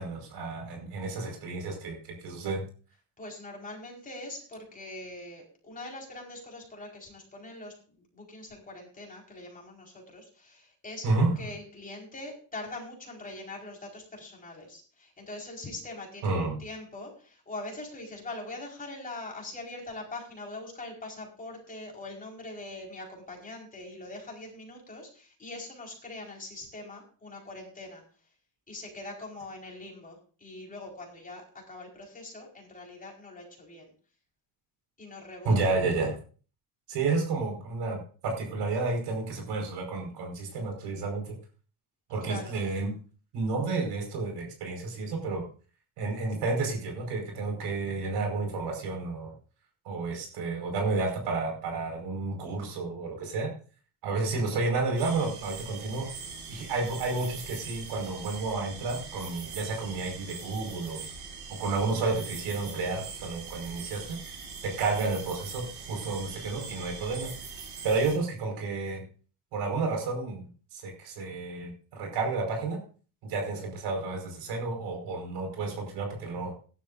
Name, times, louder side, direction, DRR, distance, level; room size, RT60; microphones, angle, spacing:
voice 1, 0.0-2.6 11.0-11.4 16.2-16.5 35.5-36.1 36.9-41.3 42.1-42.9 43.3-45.4 46.0-49.3 49.9-53.5 54.0-56.1 56.5-61.0 61.6-64.2 64.6-67.3 67.8-69.0 69.5-72.8 73.2-76.5, right 3 dB, 85° right, 3 dB, 5.1 m, -31 dB
voice 2, 3.2-28.0 28.7-33.9 35.0-35.7 42.2-42.6, left 2 dB, 20° left, -1 dB, 4.6 m, -43 dB
sound 1, 55.0-68.2, right 5 dB, 70° right, 6.2 m, -42 dB
18.0 x 11.5 x 2.6 m, 0.39 s
cardioid pair, 145°, 40 cm